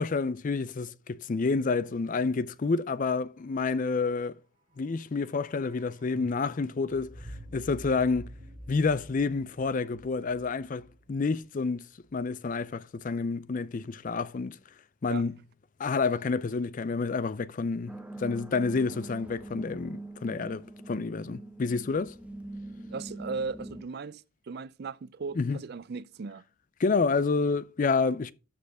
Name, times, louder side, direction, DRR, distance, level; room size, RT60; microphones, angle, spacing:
voice 1, 0.0-4.4 4.8-8.3 8.7-11.9 12.1-14.6 15.0-15.3 15.8-22.2 25.4-25.6 26.8-28.3, left 4 dB, 40° left, 0.4 m, -29 dB
sound 1, 4.4-12.6 12.8-12.9, right 1 dB, 25° right, 3.8 m, -49 dB
sound 2, 17.9-23.8, right 2 dB, 5° right, 0.7 m, -43 dB
voice 2, 22.9-26.4, right 4 dB, 50° right, 0.4 m, -37 dB
13.0 x 5.0 x 3.5 m
head